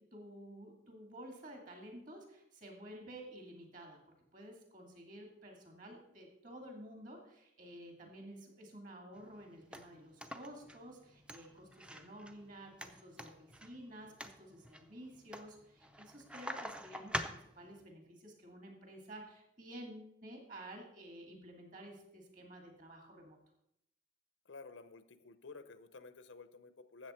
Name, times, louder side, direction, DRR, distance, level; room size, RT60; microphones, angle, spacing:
voice 1, 0.1-4.0 4.3-23.4, right 1 dB, 45° right, 2 dB, 2.4 m, -52 dB
sound 1, 9.2-17.8, equal, 5° right, 0.5 m, -47 dB
voice 2, 24.5-27.1, left 4 dB, 85° left, 12 dB, 0.8 m, -52 dB
13.0 x 7.8 x 4.4 m, 0.76 s
head